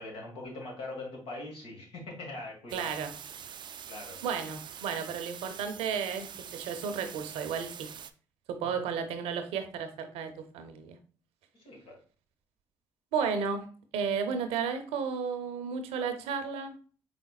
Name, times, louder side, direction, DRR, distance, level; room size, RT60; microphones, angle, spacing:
voice 1, 0.0-3.0 3.9-4.2 8.6-8.7 11.5-12.0, left 2 dB, 70° left, 0 dB, 1.7 m, -42 dB
sound 1, 2.7-8.1, right 8 dB, 50° right, 0.4 m, -45 dB
voice 2, 2.7-3.1 4.2-7.9 8.5-11.0 13.1-13.7 13.9-16.7, right 6 dB, 80° right, 8 dB, 0.7 m, -33 dB
5.0 x 3.5 x 2.3 m, 0.40 s
supercardioid pair, 60°, 10 cm